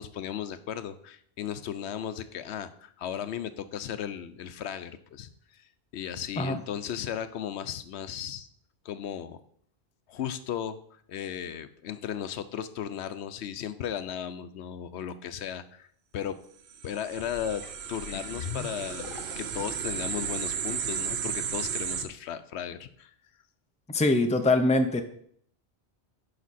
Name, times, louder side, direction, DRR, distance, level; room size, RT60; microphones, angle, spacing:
voice 1, 0.0-5.6 5.9-8.5 8.8-9.4 10.1-15.9 16.1-16.4 16.8-17.6 17.9-23.1, left 9 dB, 80° left, 12 dB, 0.9 m, -36 dB
sound 1, 16.7-22.0, right 7 dB, 75° right, 1.0 m, -34 dB
sound 2, 17.1-19.7 20.4-20.5, left 7 dB, 55° left, 0.9 m, -41 dB
voice 2, 23.9-25.0, left 2 dB, 10° left, 7 dB, 0.5 m, -23 dB
11.0 x 5.1 x 4.2 m, 0.63 s
omnidirectional pair, 1.1 m